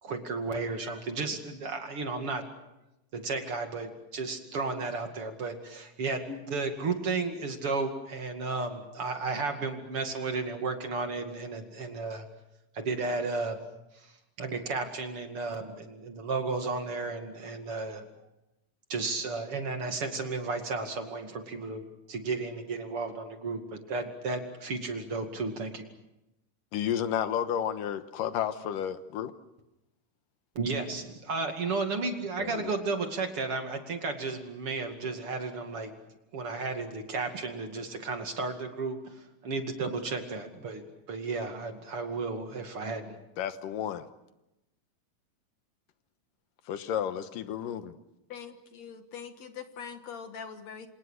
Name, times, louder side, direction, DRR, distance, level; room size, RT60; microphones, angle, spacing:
voice 1, 0.0-2.4 3.1-12.3 12.7-13.6 13.9-14.1 14.4-18.1 18.9-21.8 22.1-25.8 30.6-35.9 36.3-40.8 41.1-43.2, right 3 dB, 45° right, 3.0 m, -33 dB
voice 2, 26.7-29.3 32.4-32.7 43.4-44.1 46.7-47.9, left 9 dB, 85° left, 2.8 m, -32 dB
voice 3, 48.3-50.9, left 7 dB, 60° left, 2.5 m, -43 dB
27.5 x 27.0 x 6.5 m
omnidirectional pair, 3.8 m